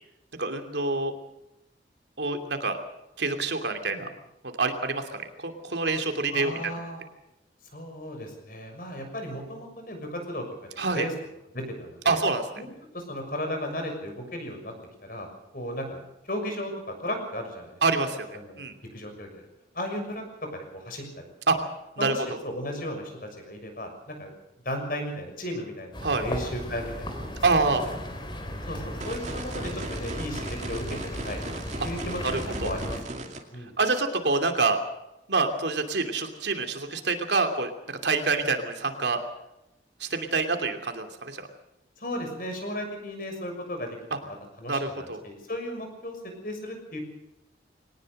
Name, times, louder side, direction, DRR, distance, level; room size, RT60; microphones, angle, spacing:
voice 1, 0.4-1.1 2.2-2.8 3.2-4.1 4.5-6.8 10.8-11.1 12.0-12.4 17.8-18.8 21.5-21.6 22.0-22.1 26.0-26.2 27.4-27.8 32.6-32.7 33.8-34.8 35.3-39.2 40.0-41.5 44.7-45.2, right 3 dB, 75° right, 6 dB, 2.8 m, -26 dB
voice 2, 6.3-7.0 7.7-10.7 10.9-11.1 11.5-12.2 12.6-14.7 15.0-15.3 15.5-16.0 16.3-17.8 18.3-18.6 18.9-19.5 19.7-20.2 20.5-21.3 22.0-24.3 24.6-27.4 28.7-33.7 42.0-47.0, equal, 50° left, 4 dB, 6.5 m, -35 dB
sound 1, 25.9-33.0, equal, 25° left, 3.5 m, -36 dB
sound 2, 29.0-33.4, right 2 dB, 40° right, 2.4 m, -38 dB
22.5 x 19.0 x 6.7 m, 0.90 s
head